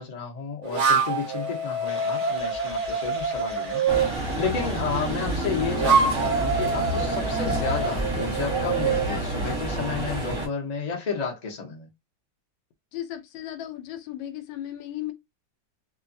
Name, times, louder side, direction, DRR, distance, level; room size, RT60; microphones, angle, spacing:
voice 1, 0.0-4.0 4.4-11.9, left 5 dB, 60° left, 0.4 m, -32 dB
sound 1, 0.6-4.1 5.4-9.1, right 5 dB, 70° right, 0.7 m, -26 dB
sound 2, 1.8-8.0, right 2 dB, 90° right, 0.3 m, -45 dB
sound 3, 3.9-10.5, right 1 dB, 25° right, 0.7 m, -29 dB
voice 2, 12.9-15.1, left 12 dB, 85° left, 1.3 m, -35 dB
2.9 x 2.2 x 2.5 m
omnidirectional pair, 2.0 m